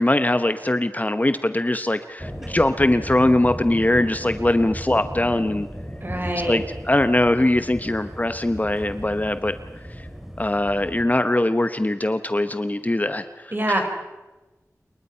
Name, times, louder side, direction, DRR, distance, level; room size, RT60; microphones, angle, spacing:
voice 1, 0.0-5.7 6.5-9.5 10.0-10.1 10.4-13.8, left 1 dB, 25° left, 11 dB, 1.0 m, -21 dB
sound 1, 2.2-11.1, equal, 5° right, 3.3 m, -36 dB
voice 2, 6.0-6.6 13.5-13.9, right 1 dB, 35° right, 4 dB, 5.2 m, -25 dB
28.0 x 23.0 x 5.7 m, 1.1 s
wide cardioid pair, 60°, 6 cm